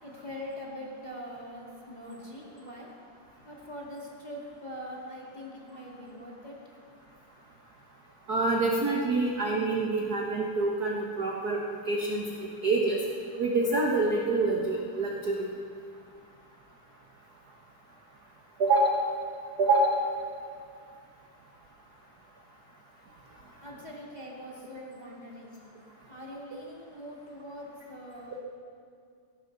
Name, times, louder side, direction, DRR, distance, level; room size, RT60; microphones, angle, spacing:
voice 1, 0.0-2.9 3.4-6.6 23.6-25.6 26.1-28.4, equal, 15° left, -4 dB, 1.7 m, -43 dB
voice 2, 8.3-11.6 11.9-12.2 12.6-13.0 13.4-15.5 18.6-19.0 19.6-20.0, right 2 dB, 60° right, -1 dB, 1.0 m, -26 dB
18.5 x 17.0 x 4.1 m, 2.3 s
omnidirectional pair, 3.6 m